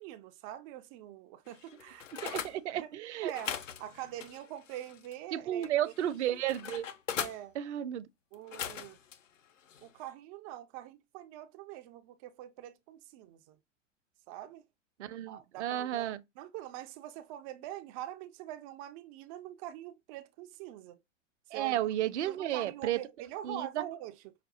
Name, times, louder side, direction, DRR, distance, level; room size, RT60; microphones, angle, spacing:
voice 1, 0.0-2.3 2.7-2.9 3.2-3.5 3.8-5.9 6.3-6.4 7.2-7.5 8.3-9.0 9.8-13.6 14.3-14.6 15.3-21.0 21.5-24.3, right 12 dB, 30° right, 0.4 m, -44 dB
sound 1, 1.5-2.6 3.2-5.2 5.6-7.4 8.3-9.2 9.7-9.9, left 8 dB, 75° left, 0.8 m, -40 dB
voice 2, 2.2-3.3 5.3-6.9 7.5-8.0 15.0-16.2 21.5-23.0 23.4-23.8, right 12 dB, 65° right, 0.7 m, -33 dB
5.8 x 2.2 x 2.6 m
hypercardioid pair, 110°, 38 cm